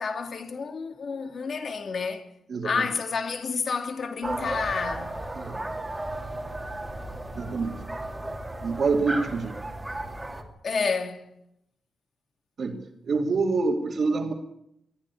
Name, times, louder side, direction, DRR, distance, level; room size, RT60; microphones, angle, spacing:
voice 1, 0.0-2.3 2.6-5.1 10.6-11.3, left 5 dB, 45° left, 2.5 m, -30 dB
sound 1, 4.2-10.4, right 1 dB, 10° right, 2.8 m, -34 dB
voice 2, 7.3-7.8 8.6-9.5 12.6-12.8 13.0-14.3, right 4 dB, 45° right, 2.7 m, -26 dB
22.5 x 14.0 x 9.8 m
wide cardioid pair, 175°, 0 cm